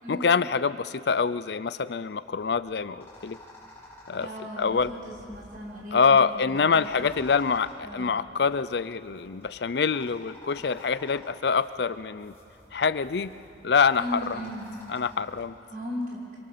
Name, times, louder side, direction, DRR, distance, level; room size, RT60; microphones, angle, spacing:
voice 1, 0.1-3.4 4.1-4.3 4.6-4.9 5.9-12.3 12.7-13.3 13.6-14.5 14.9-15.5, left 5 dB, 60° left, 15 dB, 0.5 m, -25 dB
sound 1, 2.3-15.5, left 1 dB, 15° left, 6.4 m, -51 dB
voice 2, 4.2-6.9 7.8-8.1 13.9-14.7 15.7-16.2, equal, 50° right, -4 dB, 6.2 m, -37 dB
26.5 x 23.5 x 6.7 m, 2.8 s
head